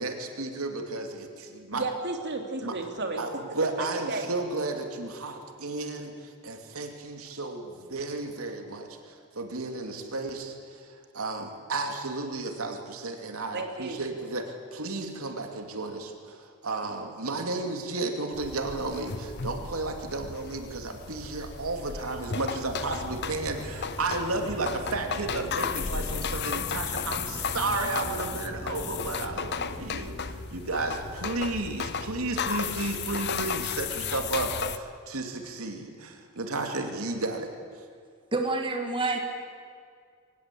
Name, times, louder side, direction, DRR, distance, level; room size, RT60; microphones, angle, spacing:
voice 1, 0.0-1.9 2.6-2.8 3.2-37.5, right 2 dB, 85° right, 4 dB, 2.6 m, -33 dB
voice 2, 1.7-3.2 3.8-4.3 13.5-14.0, right 3 dB, 55° right, 4 dB, 2.9 m, -33 dB
sound 1, 18.3-34.8, left 6 dB, 55° left, 0.9 m, -34 dB
sound 2, 22.2-30.2, equal, 10° right, 6.5 m, -42 dB
voice 3, 38.3-39.2, right 3 dB, 25° right, 4 dB, 1.9 m, -27 dB
23.5 x 19.0 x 8.5 m, 2.1 s
head